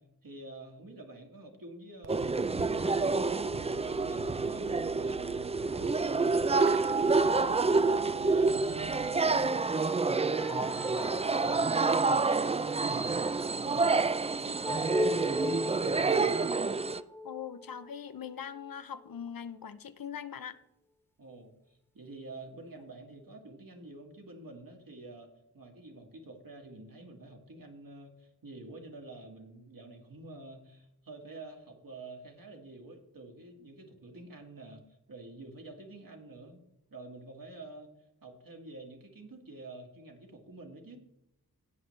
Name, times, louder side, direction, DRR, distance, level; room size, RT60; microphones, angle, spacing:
voice 1, 0.0-2.2 2.6-6.2 6.7-7.8 8.2-10.3 10.6-14.2 14.4-16.3 21.2-25.3 25.5-36.6 36.9-37.9 38.2-41.0, right 2 dB, 60° right, 2 dB, 1.8 m, -48 dB
Fireworks, 2.0-9.5, right 8 dB, 80° right, 0.7 m, -49 dB
sound 1, 2.1-17.0, right 4 dB, 20° right, 0.3 m, -28 dB
sound 2, 10.3-19.2, left 2 dB, 5° left, 0.7 m, -39 dB
voice 2, 17.2-20.6, left 8 dB, 60° left, 13 dB, 0.6 m, -41 dB
17.5 x 6.0 x 3.1 m, 0.84 s
wide cardioid pair, 55°, 38 cm